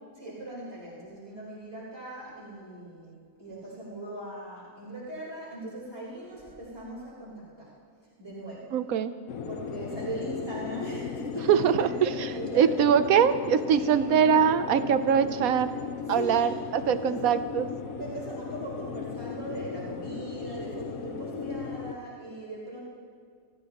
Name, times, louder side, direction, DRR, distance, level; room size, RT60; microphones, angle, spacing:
voice 1, 0.1-3.1 3.4-7.7 8.2-8.7 9.5-12.7 13.7-14.0 16.0-16.6 16.9-17.2 18.0-22.8, right 1 dB, 50° right, -8 dB, 4.6 m, -39 dB
voice 2, 8.7-9.1 11.5-15.7 16.1-17.7, right 8 dB, 80° right, 12 dB, 1.2 m, -23 dB
sound 1, 9.3-21.9, left 6 dB, 80° left, 1.2 m, -37 dB
26.5 x 14.5 x 3.0 m, 2.1 s
omnidirectional pair, 1.5 m